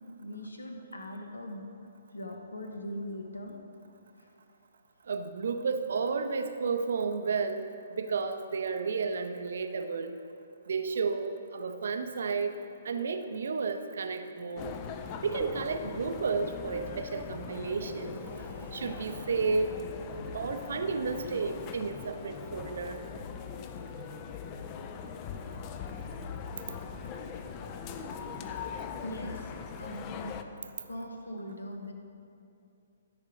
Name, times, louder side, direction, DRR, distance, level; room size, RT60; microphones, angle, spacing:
voice 1, 0.2-1.6 2.1-3.5 4.2-4.3 29.0-29.5 29.8-30.3 30.9-31.9, equal, 70° left, 3 dB, 1.2 m, -40 dB
voice 2, 5.1-10.2 10.7-12.6 12.8-14.8 15.2-19.7 20.1-23.0, right 4 dB, 55° right, 8 dB, 0.6 m, -32 dB
sound 1, 14.6-30.4, left 6 dB, 25° left, 0.5 m, -41 dB
12.5 x 5.4 x 5.0 m, 2.6 s
figure-of-eight pair, 125°, 0 cm